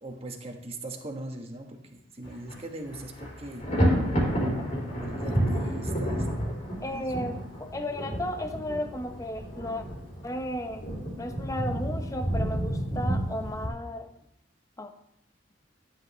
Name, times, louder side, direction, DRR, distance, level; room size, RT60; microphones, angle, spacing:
voice 1, 0.0-3.7 4.9-6.2 6.9-7.4, right 1 dB, 30° right, 3 dB, 1.3 m, -40 dB
Thunder, 2.2-2.6 2.9-13.7, equal, 40° left, 3.3 m, -30 dB
voice 2, 6.8-9.8 10.2-10.9 11.2-14.1 14.8-14.9, left 1 dB, 20° left, 6 dB, 0.8 m, -34 dB
13.0 x 10.0 x 3.2 m, 0.77 s
head